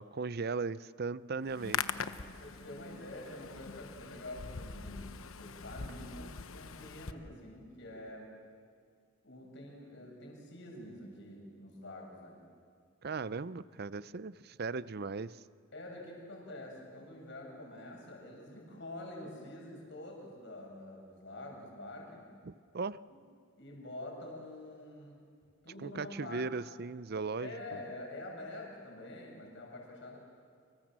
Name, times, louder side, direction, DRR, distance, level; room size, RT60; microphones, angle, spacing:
voice 1, 0.0-1.8 13.0-15.4 22.4-23.0 25.8-27.5, right 4 dB, 50° right, 17 dB, 0.6 m, -37 dB
Hands, 1.4-7.1, left 6 dB, 80° left, 1.0 m, -42 dB
voice 2, 2.4-8.3 9.2-12.4 15.7-22.2 23.1-23.2 23.6-25.2 25.6-26.5 27.4-30.2, left 1 dB, 60° left, -1 dB, 7.1 m, -47 dB
29.5 x 25.5 x 7.5 m, 2.1 s
head